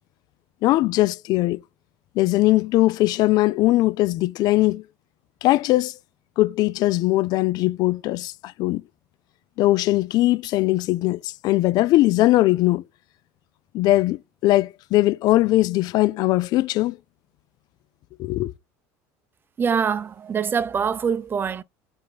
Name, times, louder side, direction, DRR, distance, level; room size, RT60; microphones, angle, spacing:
voice 1, 0.6-1.6 2.2-4.8 5.4-5.9 6.4-8.8 9.6-12.8 13.7-17.0 18.2-18.5, left 17 dB, 55° left, 0.4 m, -20 dB
voice 2, 19.6-21.6, right 6 dB, 25° right, 0.6 m, -24 dB
5.3 x 5.2 x 4.0 m
supercardioid pair, 100°, 8 cm